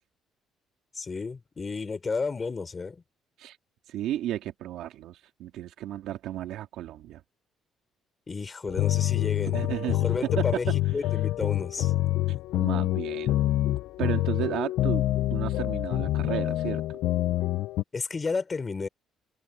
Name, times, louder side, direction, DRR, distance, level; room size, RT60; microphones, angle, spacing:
voice 1, 0.9-3.0 8.3-9.6 10.0-10.7 10.9-11.9 17.9-18.9, left 4 dB, 20° left, 4.5 m, -32 dB
voice 2, 3.9-7.2 9.5-10.1 12.3-13.4 14.0-17.0, right 12 dB, 75° right, 2.3 m, -34 dB
sound 1, 8.7-17.8, left 15 dB, 70° left, 0.6 m, -27 dB
cardioid pair, 175°, 0 cm